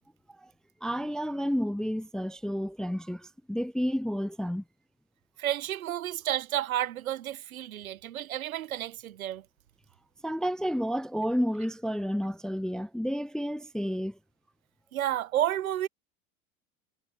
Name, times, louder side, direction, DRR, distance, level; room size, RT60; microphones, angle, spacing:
voice 1, 0.8-4.6 10.2-14.2, equal, ahead, 0.5 m, -30 dB
voice 2, 5.4-9.4 14.9-15.9, right 12 dB, 70° right, 1.1 m, -31 dB
figure-of-eight pair, 80°, 43 cm